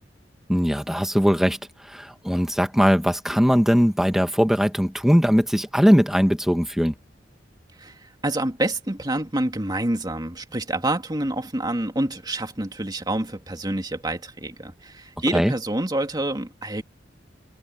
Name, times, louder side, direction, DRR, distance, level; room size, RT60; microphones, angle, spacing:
voice 1, 0.5-1.6 1.9-6.9 15.3-15.5, equal, ahead, 1.5 m, -20 dB
voice 2, 7.8-16.8, right 1 dB, 25° right, 2.4 m, -27 dB
head